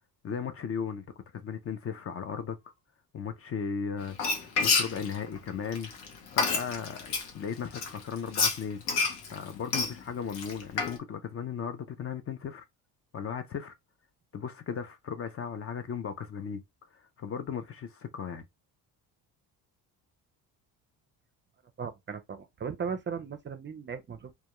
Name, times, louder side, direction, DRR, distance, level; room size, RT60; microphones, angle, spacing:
voice 1, 0.2-1.0 1.3-2.7 3.1-5.9 6.3-8.8 9.3-12.6 13.1-13.7 14.3-16.6 16.9-18.4, left 7 dB, 35° left, 0.5 m, -36 dB
Frying (food), 4.1-7.3 7.7-11.0, left 4 dB, 80° left, 0.9 m, -29 dB
voice 2, 21.8-24.4, right 6 dB, 30° right, 0.4 m, -37 dB
2.2 x 2.2 x 2.9 m
cardioid pair, 85°, 40 cm